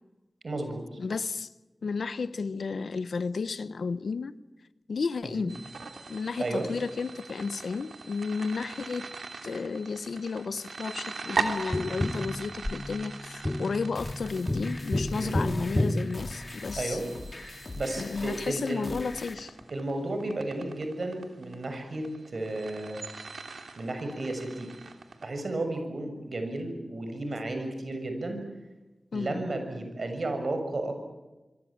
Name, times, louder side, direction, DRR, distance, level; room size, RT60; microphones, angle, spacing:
voice 1, 0.4-1.0 5.3-5.5 6.4-6.7 15.1-15.4 16.8-17.1 17.8-18.9 19.7-23.0 23.8-24.7 25.2-28.4 29.1-31.0, right 2 dB, 65° right, 6.9 m, -33 dB
voice 2, 1.0-1.5 1.8-4.4 4.9-5.6 6.1-9.1 9.4-17.0 18.0-19.5 29.1-29.4, left 4 dB, 85° left, 1.0 m, -32 dB
sound 1, 5.5-25.2, right 4 dB, 85° right, 3.0 m, -40 dB
Tap, 11.7-17.0 19.6-19.7, left 1 dB, 20° left, 1.3 m, -31 dB
sound 2, 13.9-19.3, left 2 dB, 50° left, 4.2 m, -42 dB
25.5 x 25.0 x 8.8 m
cardioid pair, 50°, 0 cm